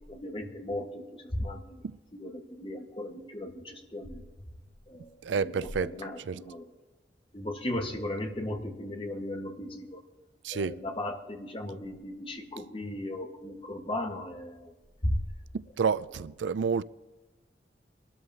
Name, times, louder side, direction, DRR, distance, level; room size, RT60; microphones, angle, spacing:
voice 1, 0.1-1.8 2.1-4.2 4.9-6.7 7.3-10.0 10.5-14.7 15.0-15.2, left 1 dB, 30° left, 1.5 m, -36 dB
voice 2, 5.2-6.0 6.3-6.4 10.4-10.8 15.5-16.8, right 5 dB, 90° right, 0.4 m, -29 dB
24.0 x 12.5 x 2.9 m
head